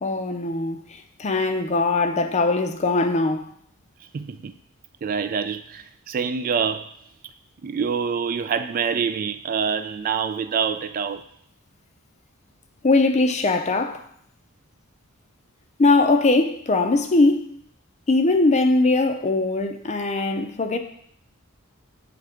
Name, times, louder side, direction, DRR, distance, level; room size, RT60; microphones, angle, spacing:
voice 1, 0.0-3.5 12.8-14.0 15.8-17.5 18.1-20.8, left 3 dB, 30° left, 0.5 m, -21 dB
voice 2, 4.1-4.5 5.0-6.9 7.6-11.2, right 6 dB, 40° right, 0.3 m, -26 dB
7.5 x 3.3 x 4.9 m
head